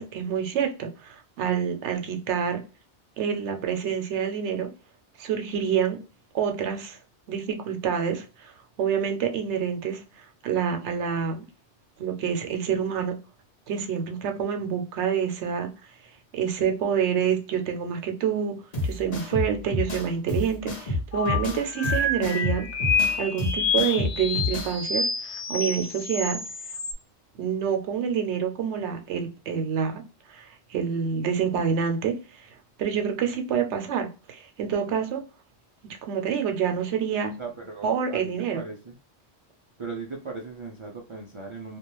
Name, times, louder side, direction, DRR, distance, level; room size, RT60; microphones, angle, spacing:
voice 1, 0.0-2.6 3.2-4.7 5.2-6.0 6.3-7.0 7.3-8.5 8.8-10.0 10.4-11.5 12.0-13.2 13.7-15.7 16.3-18.6 18.8-22.7 23.2-26.4 27.3-30.0 30.3-32.2 32.8-35.2 35.8-37.3 37.8-38.6, right 7 dB, 80° right, 5 dB, 0.9 m, -27 dB
sound 1, 18.7-24.7, left 2 dB, 40° left, 0.8 m, -29 dB
sound 2, 21.1-26.9, left 4 dB, 80° left, 0.9 m, -28 dB
voice 2, 37.4-39.0 39.8-41.8, right 4 dB, 50° right, 0 dB, 0.3 m, -38 dB
2.4 x 2.2 x 2.9 m, 0.33 s
omnidirectional pair, 1.2 m